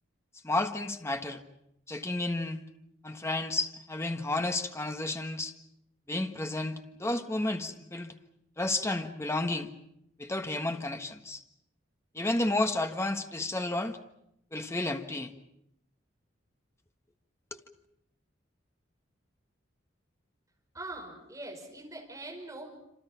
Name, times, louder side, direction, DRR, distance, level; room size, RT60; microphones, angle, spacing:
voice 1, 0.4-1.4 1.9-2.6 3.0-5.5 6.1-8.1 8.6-9.7 10.2-11.4 12.1-14.0 14.5-15.3 17.5-17.6, left 2 dB, 15° left, 6 dB, 1.4 m, -31 dB
voice 2, 20.7-22.7, right 2 dB, 15° right, 1 dB, 5.5 m, -42 dB
27.0 x 27.0 x 5.8 m, 0.78 s
head